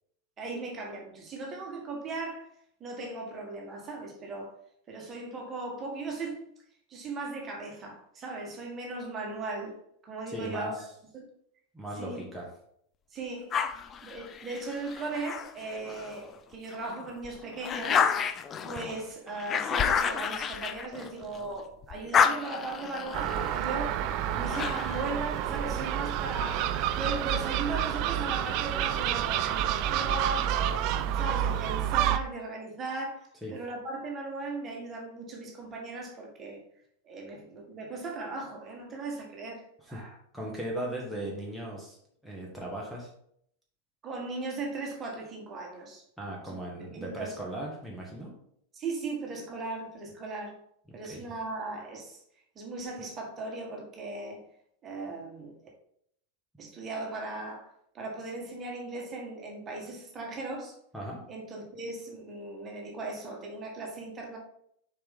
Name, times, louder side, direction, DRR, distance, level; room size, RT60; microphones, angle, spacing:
voice 1, 0.4-2.5 2.8-4.5 4.9-6.4 6.9-9.8 10.0-10.7 11.1-11.2 12.0-12.2 13.1-13.5 14.0-18.1 18.6-26.6 26.9-36.6 37.0-40.2 44.0-46.0 46.5-47.4 48.7-50.6 50.9-52.2 52.6-54.4 54.8-55.5 56.6-60.8 61.3-64.4, right 3 dB, 25° right, 0 dB, 1.7 m, -38 dB
voice 2, 10.3-10.8 11.7-12.5 24.3-24.5 33.4-33.6 39.9-40.0 40.3-42.0 42.2-43.1 46.2-48.3 50.9-51.2 60.9-61.2, right 1 dB, ahead, -2 dB, 1.6 m, -37 dB
sound 1, 13.5-16.2 16.7-21.5 21.8-25.1, left 7 dB, 25° left, 0.5 m, -30 dB
Gull seagull, 23.1-32.2, right 10 dB, 40° right, 0.4 m, -29 dB
6.9 x 4.9 x 3.7 m, 0.69 s
figure-of-eight pair, 90°, 0 cm